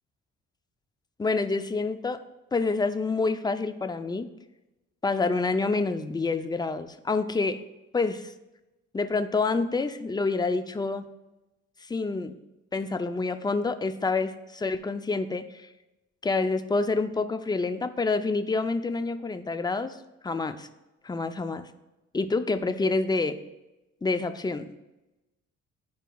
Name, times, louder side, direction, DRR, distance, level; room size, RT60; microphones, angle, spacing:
voice 1, 1.2-2.2 2.5-4.3 5.0-7.6 7.9-8.3 8.9-11.1 11.9-12.4 12.7-15.7 16.2-20.0 20.2-20.7 21.0-21.7 22.1-23.4 24.0-24.7, left 3 dB, 15° left, 10 dB, 0.4 m, -27 dB
11.0 x 4.6 x 2.3 m, 1.0 s
cardioid pair, 90°, 30 cm